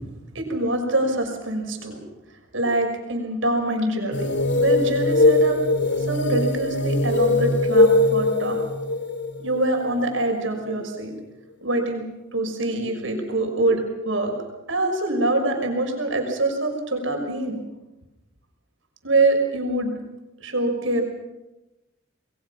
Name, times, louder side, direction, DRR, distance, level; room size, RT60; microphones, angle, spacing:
voice 1, 0.3-2.0 2.5-4.3 4.5-5.6 5.9-8.6 9.4-11.1 11.6-14.3 14.7-17.6 19.0-19.9 20.4-21.0, right 2 dB, 75° right, 3 dB, 5.9 m, -24 dB
sound 1, 4.1-10.5, left 2 dB, 60° left, 3.0 m, -21 dB
28.5 x 21.5 x 5.9 m, 1.0 s
head